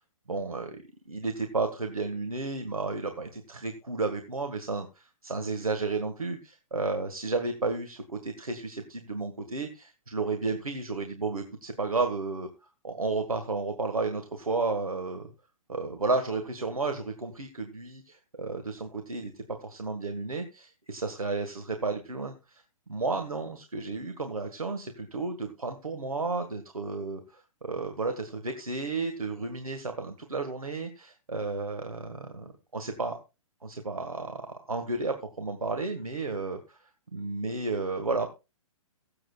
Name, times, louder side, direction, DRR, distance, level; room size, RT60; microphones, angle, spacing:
voice 1, 0.3-12.5 12.8-15.3 15.7-22.6 22.9-33.2 33.6-36.8 37.1-38.3, right 3 dB, 90° right, 6 dB, 1.7 m, -32 dB
23.0 x 7.7 x 2.3 m, 0.28 s
figure-of-eight pair, 125°, 18 cm